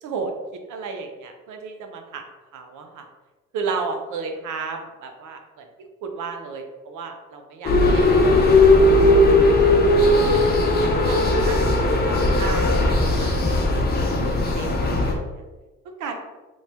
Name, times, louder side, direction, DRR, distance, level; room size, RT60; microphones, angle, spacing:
voice 1, 0.0-2.3 2.5-3.1 3.5-5.7 6.0-8.6 10.3-10.5 10.8-11.2 11.4-11.8 12.1-13.8 14.3-15.2 16.0-16.1, right 4 dB, 80° right, 4 dB, 0.6 m, -33 dB
sound 1, 7.6-15.1, left 2 dB, 35° left, 0.7 m, -17 dB
3.1 x 2.2 x 4.1 m, 1.2 s
cardioid pair, 90°, 30 cm